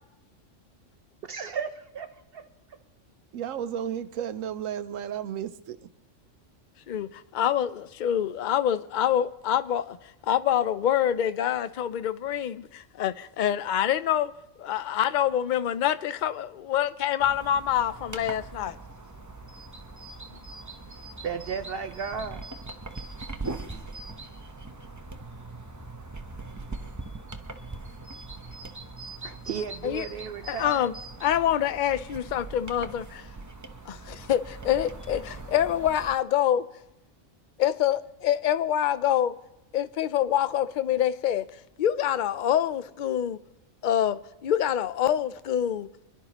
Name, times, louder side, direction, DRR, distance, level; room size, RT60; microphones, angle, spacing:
voice 1, 1.3-2.5 21.2-22.5 29.2-30.9, right 6 dB, 60° right, 0.7 m, -34 dB
voice 2, 3.3-5.9, right 9 dB, 90° right, 1.0 m, -33 dB
voice 3, 6.9-10.0 10.2-14.3 14.6-18.7 29.8-30.1 30.5-30.9 31.2-33.3 33.9-36.6 37.6-39.3 39.7-41.4 41.8-43.4 43.8-45.9, left 10 dB, 55° left, 0.5 m, -26 dB
sound 1, 17.2-36.2, right 3 dB, 20° right, 0.6 m, -41 dB
25.5 x 11.5 x 3.0 m
omnidirectional pair, 1.3 m